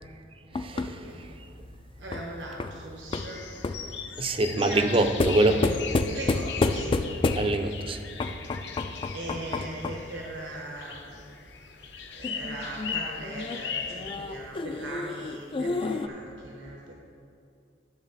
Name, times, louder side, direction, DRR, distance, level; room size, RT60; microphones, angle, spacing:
sound 1, 0.5-3.9 5.2-7.7 8.2-10.1 12.2-16.1, left 3 dB, 30° left, 0.3 m, -30 dB
voice 1, 0.7-1.2 2.0-3.5 4.5-5.8 6.1-7.0 7.3-7.4 9.1-11.3 12.1-16.9, right 1 dB, 85° right, -2 dB, 1.2 m, -39 dB
sound 2, 3.1-14.2, left 7 dB, 70° left, 0.8 m, -39 dB
voice 2, 4.2-5.7 7.4-8.0, right 2 dB, 30° right, 8 dB, 0.5 m, -24 dB
12.5 x 6.5 x 4.1 m, 2.4 s
head